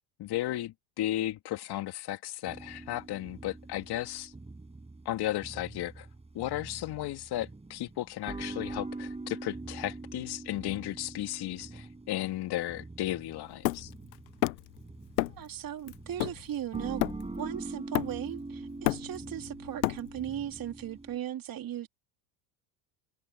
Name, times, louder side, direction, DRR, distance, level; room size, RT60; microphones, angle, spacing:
voice 1, 0.2-4.3 5.0-6.1 6.3-13.9, left 14 dB, 50° left, 2.5 m, -34 dB
sound 1, 2.5-21.2, right 2 dB, 10° right, 7.5 m, -44 dB
Hammer, 13.6-14.8 15.2-15.5 15.9-17.5 17.9-18.4 18.7-20.4, left 19 dB, 80° left, 1.0 m, -31 dB
voice 2, 15.3-17.0 17.4-21.9, right 11 dB, 40° right, 3.8 m, -37 dB
hypercardioid pair, 85°, 50 cm